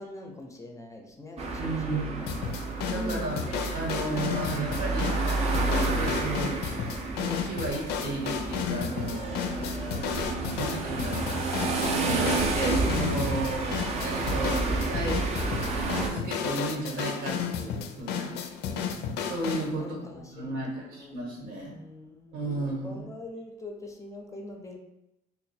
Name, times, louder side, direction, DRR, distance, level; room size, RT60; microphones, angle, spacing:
voice 1, 0.0-2.3 2.9-3.4 12.2-12.4 18.6-18.9 19.8-21.1 21.6-24.8, left 1 dB, 20° left, 1 dB, 0.5 m, -42 dB
sound 1, 1.4-16.1, right 3 dB, 40° right, 0.5 m, -30 dB
voice 2, 1.6-2.1 2.9-3.4 3.7-5.2 5.9-6.8 7.1-9.6 10.5-11.3 12.0-15.2 16.0-18.4 19.2-21.7 22.3-23.0, right 2 dB, 85° right, -2 dB, 1.2 m, -34 dB
sound 2, 2.3-19.7, left 7 dB, 85° left, 0.4 m, -33 dB
3.1 x 2.1 x 4.2 m, 0.90 s
cardioid pair, 110°, 17 cm